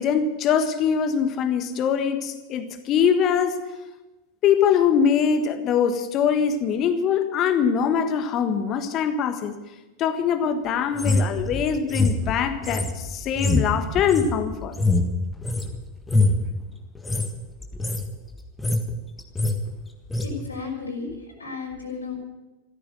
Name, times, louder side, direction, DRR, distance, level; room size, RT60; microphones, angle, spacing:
voice 1, 0.0-3.6 4.4-9.5 10.0-14.8, left 7 dB, 35° left, 9 dB, 1.5 m, -23 dB
sound 1, 10.9-15.7 16.0-16.4 16.9-17.3 17.6-18.1 18.4-18.9 19.2-19.6 20.1-20.3, left 2 dB, 10° left, 1.6 m, -24 dB
voice 2, 20.2-22.1, left 4 dB, 80° left, -2 dB, 4.5 m, -33 dB
15.0 x 13.5 x 6.7 m, 1.1 s
figure-of-eight pair, 90°, 0 cm